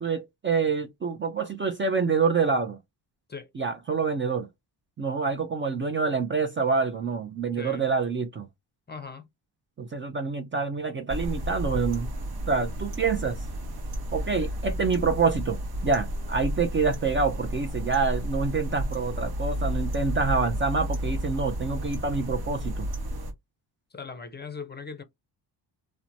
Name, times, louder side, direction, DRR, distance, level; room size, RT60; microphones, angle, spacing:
voice 1, 0.0-2.8 3.6-4.5 5.0-8.5 9.8-12.1 12.5-13.4 14.1-22.9, right 4 dB, 30° right, 0.4 m, -27 dB
voice 2, 7.5-7.9 8.9-9.3 23.9-25.0, left 5 dB, 25° left, 0.5 m, -39 dB
sound 1, 11.1-23.3, equal, 55° right, 0.9 m, -32 dB
2.9 x 2.1 x 2.6 m
cardioid pair, 105°, 43 cm